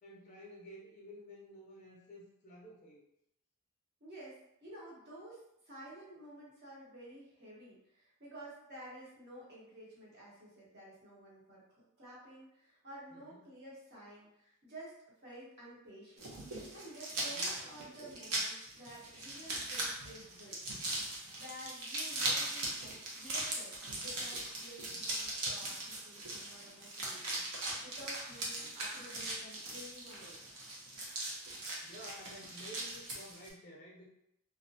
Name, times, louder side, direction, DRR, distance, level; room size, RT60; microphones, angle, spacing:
voice 1, 0.0-3.0 13.1-13.4 17.1-17.6 31.3-31.4 31.8-34.1, equal, 35° left, -3 dB, 0.4 m, -52 dB
voice 2, 4.0-11.6 12.0-16.3 16.7-20.6 21.3-30.4, right 1 dB, 50° right, -6 dB, 0.9 m, -52 dB
sound 1, 16.2-33.5, right 2 dB, 85° right, 0.7 m, -40 dB
2.3 x 2.1 x 2.6 m, 0.80 s
head